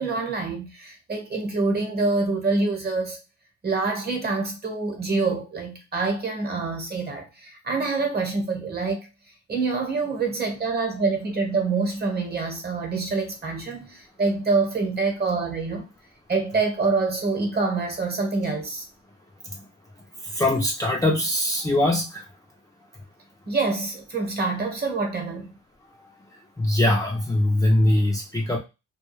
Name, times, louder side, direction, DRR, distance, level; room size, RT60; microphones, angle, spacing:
voice 1, 0.0-3.2 3.6-9.1 9.5-15.9 16.3-18.8 23.5-25.5, right 3 dB, 35° right, 1.1 m, -26 dB
voice 2, 20.3-22.2 26.6-28.6, left 1 dB, 10° left, 0.5 m, -22 dB
2.3 x 2.3 x 3.1 m
cardioid pair, 90°, 30 cm